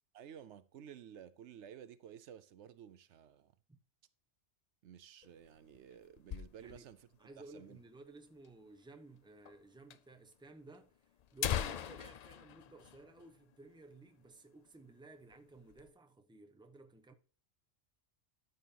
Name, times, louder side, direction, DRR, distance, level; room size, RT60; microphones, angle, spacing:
voice 1, 0.1-3.5 4.8-7.1 7.4-7.8, right 9 dB, 80° right, 0.9 m, -53 dB
sound 1, 5.2-7.0 7.4-7.5 7.7-7.8 8.4-8.5 9.5-9.6 9.9-10.0 10.7-10.8 11.2-13.8 14.1-14.2 14.7-14.9 15.3-15.9, left 9 dB, 65° left, 0.4 m, -41 dB
voice 2, 7.2-11.0 11.3-17.1, right 2 dB, 5° right, 0.8 m, -56 dB
13.0 x 5.6 x 2.9 m
omnidirectional pair, 1.2 m